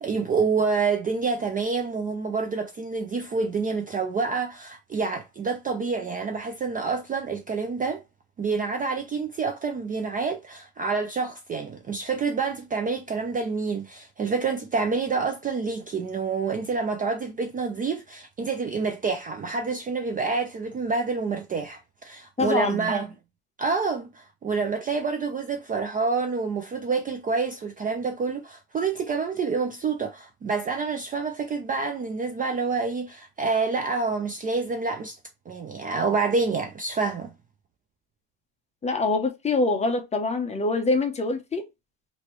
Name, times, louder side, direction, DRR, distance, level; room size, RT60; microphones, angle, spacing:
voice 1, 0.0-8.0 8.4-23.1 23.6-35.2 35.5-37.3, right 4 dB, 25° right, 0.4 m, -27 dB
voice 2, 22.4-22.9 38.8-41.7, left 3 dB, 20° left, 0.6 m, -25 dB
3.0 x 2.7 x 3.0 m
cardioid pair, 120°, 38 cm